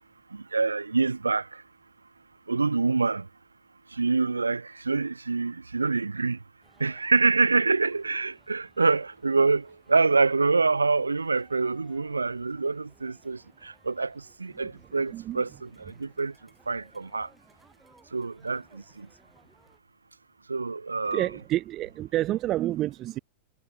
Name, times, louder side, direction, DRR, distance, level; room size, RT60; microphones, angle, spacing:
voice 1, 0.3-1.6 2.5-3.3 3.9-6.4 6.8-16.3 16.7-17.3 18.1-19.1 20.5-21.3, right 4 dB, 80° right, 0.9 m, -26 dB
sound 1, 6.6-19.8, right 3 dB, 10° right, 6.3 m, -62 dB
voice 2, 15.1-15.4 21.1-23.2, right 14 dB, 35° right, 0.3 m, -28 dB
figure-of-eight pair, 90°, 0 cm